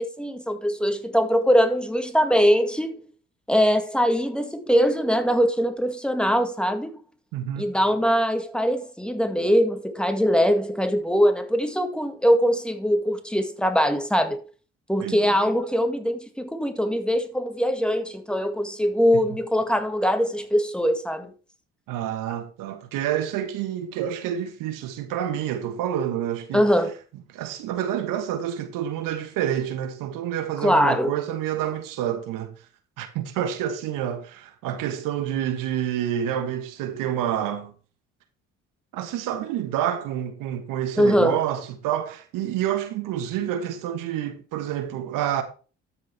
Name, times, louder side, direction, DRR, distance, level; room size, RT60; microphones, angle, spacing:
voice 1, 0.0-3.0 3.5-6.9 7.6-14.4 14.9-21.3 26.5-26.9 30.6-31.1 41.0-41.4, equal, 5° left, 1.9 m, -22 dB
voice 2, 7.3-7.7 15.0-15.4 21.9-26.7 27.3-32.5 33.0-37.7 38.9-45.4, right 10 dB, 70° right, 1.3 m, -28 dB
13.0 x 6.6 x 3.4 m
hypercardioid pair, 55°, 34 cm